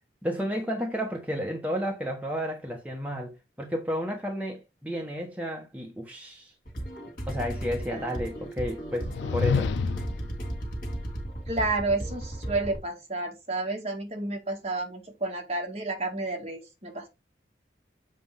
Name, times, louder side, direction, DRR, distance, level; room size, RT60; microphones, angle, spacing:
voice 1, 0.2-3.3 3.6-6.5 7.3-9.7, equal, 10° right, 1.1 m, -32 dB
sound 1, 6.7-12.8, right 1 dB, 50° left, 3.0 m, -35 dB
voice 2, 7.8-8.2 11.5-17.1, right 2 dB, 35° right, 1.9 m, -31 dB
sound 2, 8.9-10.3, left 5 dB, 85° left, 0.3 m, -28 dB
7.6 x 5.4 x 3.6 m
head